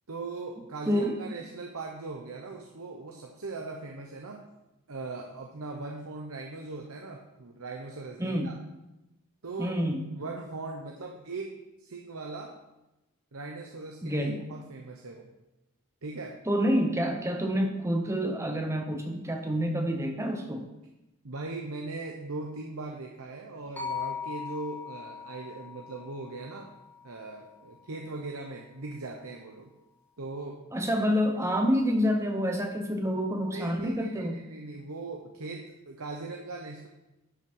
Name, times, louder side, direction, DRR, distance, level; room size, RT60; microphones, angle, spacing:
voice 1, 0.1-4.4 4.9-8.6 9.4-9.8 10.2-12.6 13.3-15.3 16.0-16.4 21.2-26.7 27.0-29.7 30.2-30.6 33.5-36.9, right 3 dB, 90° right, 2 dB, 1.0 m, -39 dB
voice 2, 0.9-1.2 8.2-8.5 9.6-10.1 14.0-14.4 16.5-20.7 30.7-34.4, equal, 15° right, 4 dB, 0.8 m, -28 dB
sound 1, 23.8-28.0, left 6 dB, 10° left, 1.8 m, -40 dB
11.0 x 5.7 x 5.5 m, 0.97 s
head